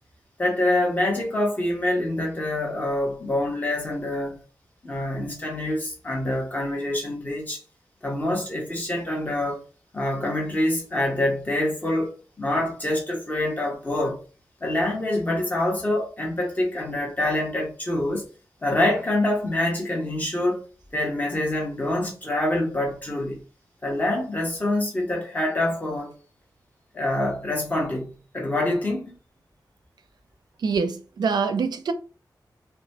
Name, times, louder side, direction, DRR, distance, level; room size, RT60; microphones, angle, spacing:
voice 1, 0.4-4.4 4.8-7.6 8.0-9.6 9.9-14.2 14.6-18.2 18.6-20.6 20.9-23.4 23.8-26.1 26.9-29.2, left 1 dB, 20° left, 1.0 m, -26 dB
voice 2, 30.6-31.9, right 5 dB, 70° right, 0.4 m, -25 dB
2.9 x 2.2 x 2.7 m
wide cardioid pair, 120°, 7 cm